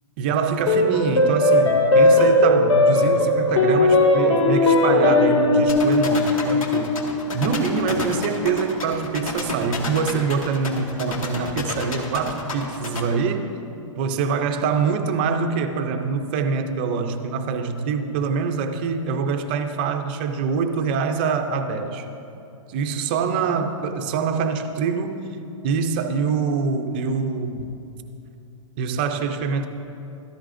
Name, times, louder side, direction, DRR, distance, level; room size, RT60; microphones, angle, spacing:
voice 1, 0.2-6.9 7.3-13.4 14.0-22.0 22.7-25.3 25.6-27.8 28.8-29.7, right 5 dB, 20° right, 6 dB, 0.3 m, -25 dB
sound 1, 0.7-9.3, left 2 dB, 70° left, 2.2 m, -19 dB
sound 2, 5.7-13.0, left 4 dB, 85° left, 1.8 m, -30 dB
15.0 x 13.5 x 2.5 m, 2.7 s
hypercardioid pair, 175°, 17 cm